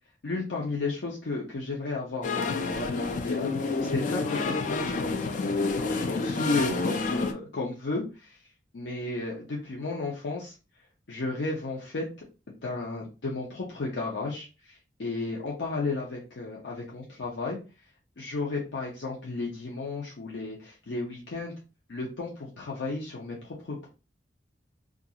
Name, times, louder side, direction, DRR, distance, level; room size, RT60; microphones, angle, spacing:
voice 1, 0.2-8.4 8.7-10.5 11.1-12.1 12.6-17.6 18.2-21.5 21.9-23.9, left 3 dB, 80° left, -3 dB, 0.6 m, -33 dB
sound 1, 2.2-7.3, left 3 dB, 45° left, 0.3 m, -29 dB
2.4 x 2.3 x 2.8 m, 0.31 s
head